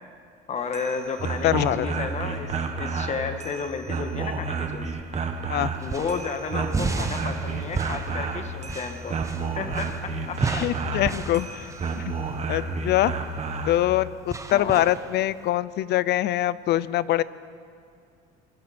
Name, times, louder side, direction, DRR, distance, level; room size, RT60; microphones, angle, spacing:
voice 1, 0.5-4.9 5.8-9.2 9.5-10.6 14.5-14.8, left 5 dB, 35° left, 6 dB, 1.8 m, -32 dB
sound 1, 0.6-13.8, right 4 dB, 35° right, 1.7 m, -31 dB
voice 2, 1.4-1.9 5.5-5.7 10.5-11.7 12.0-12.1 12.5-13.1 13.7-17.2, left 14 dB, 60° left, 18 dB, 0.6 m, -24 dB
sound 2, 5.6-15.5, right 3 dB, 15° right, 1.1 m, -34 dB
26.0 x 23.0 x 4.4 m, 2.3 s
cardioid pair, 125°, 19 cm